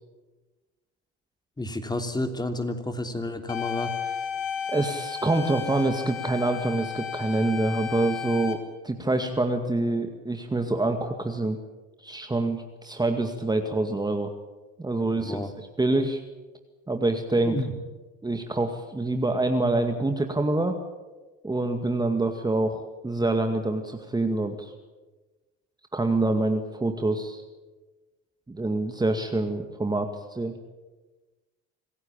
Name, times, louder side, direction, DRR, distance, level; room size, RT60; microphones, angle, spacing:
voice 1, 1.6-3.9 15.2-15.5 17.4-17.7, left 1 dB, 15° left, 6 dB, 3.1 m, -30 dB
sound 1, 3.5-8.5, left 8 dB, 85° left, 2.9 m, -33 dB
voice 2, 4.7-11.6 12.0-14.3 14.8-16.2 16.9-17.6 18.2-20.8 21.4-24.7 25.9-27.4 28.5-30.5, right 2 dB, 15° right, 6 dB, 2.1 m, -26 dB
26.5 x 15.5 x 8.8 m, 1.2 s
hypercardioid pair, 65°, 30 cm